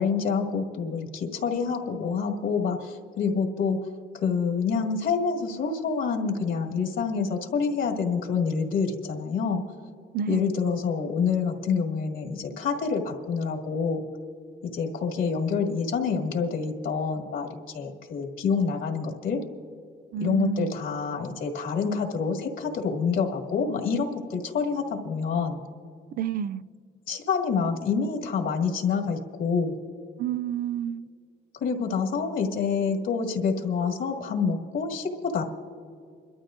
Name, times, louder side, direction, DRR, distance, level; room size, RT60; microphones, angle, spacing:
voice 1, 0.0-3.8 4.1-9.6 10.3-14.0 14.7-19.4 20.2-25.6 27.1-29.7 31.6-35.4, left 5 dB, 85° left, 1.9 m, -27 dB
voice 2, 10.1-10.6 20.1-20.7 26.2-26.6 30.2-31.0, right 8 dB, 50° right, 0.4 m, -29 dB
29.5 x 12.5 x 2.6 m
cardioid pair, 90°, 20 cm